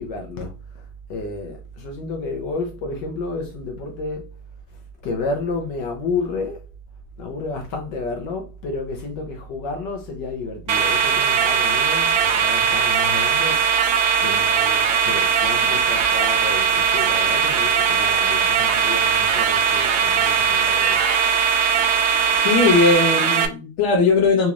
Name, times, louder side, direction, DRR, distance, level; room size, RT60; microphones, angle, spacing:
voice 1, 0.0-4.4 4.7-6.7 7.2-21.1, left 3 dB, 70° left, 1.2 m, -31 dB
sound 1, 10.7-23.5, right 6 dB, 85° right, 1.4 m, -19 dB
voice 2, 22.4-24.5, left 4 dB, 85° left, 1.5 m, -18 dB
4.0 x 3.0 x 2.4 m
omnidirectional pair, 2.1 m